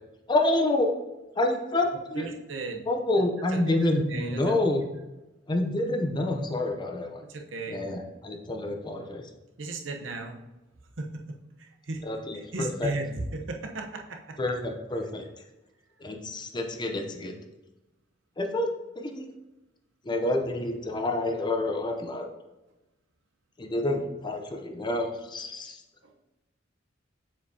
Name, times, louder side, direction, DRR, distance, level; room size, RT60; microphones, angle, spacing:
voice 1, 0.3-0.9 1.4-2.3 2.9-4.8 5.5-7.2 7.7-9.2 12.0-12.9 14.4-15.3 16.0-17.3 18.4-18.7 19.0-19.3 20.0-22.3 23.6-25.8, left 2 dB, 25° left, 4 dB, 0.6 m, -28 dB
voice 2, 2.2-2.8 3.5-3.8 4.1-4.4 7.3-7.8 9.6-10.4 11.0-11.1 11.6-12.0 12.3-14.4, right 3 dB, 70° right, 2 dB, 0.8 m, -35 dB
7.0 x 4.9 x 2.7 m, 1.0 s
head